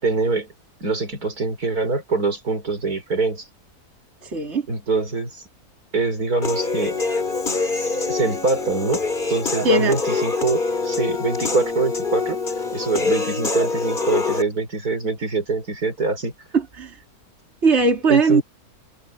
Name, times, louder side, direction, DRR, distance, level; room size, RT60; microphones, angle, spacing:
voice 1, 0.0-0.5 0.8-3.5 4.7-5.3 5.9-6.9 8.1-9.0 9.3-12.4 12.7-16.3 18.1-18.4, right 3 dB, 70° right, 5.8 m, -24 dB
voice 2, 4.2-4.6 9.6-10.0 16.5-17.0 17.6-18.4, right 3 dB, 45° right, 3.1 m, -19 dB
Human voice / Piano, 6.4-14.4, left 3 dB, 30° left, 2.8 m, -25 dB
omnidirectional pair, 1.7 m